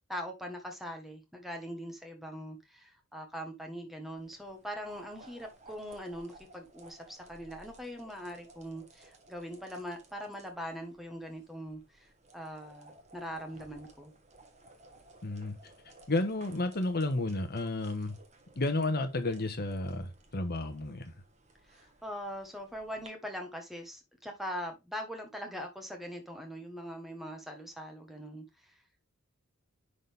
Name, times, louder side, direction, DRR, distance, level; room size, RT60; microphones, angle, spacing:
voice 1, 0.1-14.1 21.7-28.8, equal, ahead, 1.5 m, -42 dB
sound 1, 4.2-23.1, right 2 dB, 30° right, 1.4 m, -58 dB
voice 2, 15.2-15.6 16.1-18.2 18.5-21.1, left 2 dB, 45° left, 1.2 m, -32 dB
10.0 x 4.1 x 3.5 m
head